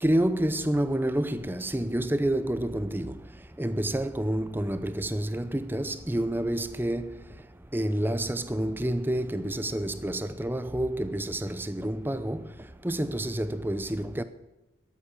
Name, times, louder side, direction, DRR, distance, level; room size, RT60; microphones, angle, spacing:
voice 1, 0.0-3.2 3.6-7.1 7.7-12.4 12.8-14.2, right 1 dB, 10° right, 0.6 m, -28 dB
13.0 x 8.3 x 8.8 m
head